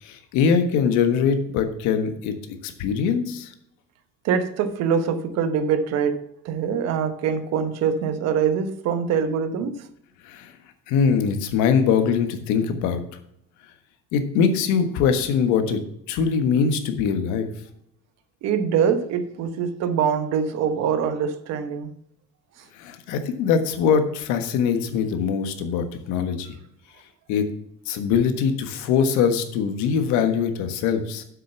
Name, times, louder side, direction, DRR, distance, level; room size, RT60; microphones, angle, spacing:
voice 1, 0.0-2.3 2.6-3.5 10.2-10.5 10.9-13.0 14.1-15.8 16.1-17.5 22.8-26.5 27.3-27.4 27.9-31.2, left 6 dB, 80° left, 1.4 m, -22 dB
voice 2, 4.2-9.9 18.4-21.9, right 7 dB, 65° right, 1.1 m, -24 dB
7.6 x 6.6 x 7.1 m
cardioid pair, 120°, 29 cm